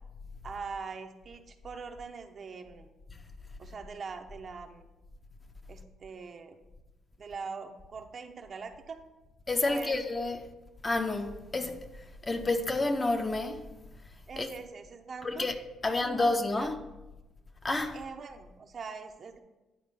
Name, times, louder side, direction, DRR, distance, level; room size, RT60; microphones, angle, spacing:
voice 1, 0.4-2.9 3.6-4.9 5.7-6.6 7.2-9.0 9.7-10.0 14.3-15.5 15.8-16.7 17.9-19.4, right 5 dB, 50° right, 0.8 m, -42 dB
voice 2, 9.5-10.5 10.8-11.8 12.2-13.7 14.4-14.5 15.2-15.6 15.8-16.8 17.6-18.0, left 2 dB, 25° left, 0.7 m, -29 dB
10.0 x 4.3 x 5.5 m
cardioid pair, 90°, 0 cm